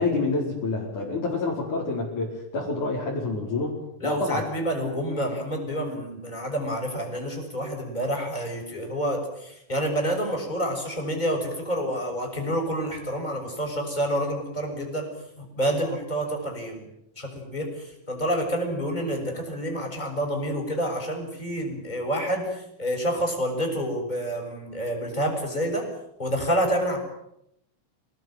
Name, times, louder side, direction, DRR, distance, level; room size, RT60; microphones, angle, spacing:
voice 1, 0.0-4.4, left 3 dB, 65° left, -4 dB, 6.4 m, -28 dB
voice 2, 4.0-15.1 15.6-16.9 17.2-25.9 26.2-27.0, equal, 10° left, 2 dB, 7.0 m, -28 dB
28.0 x 19.0 x 9.3 m, 0.80 s
omnidirectional pair, 3.8 m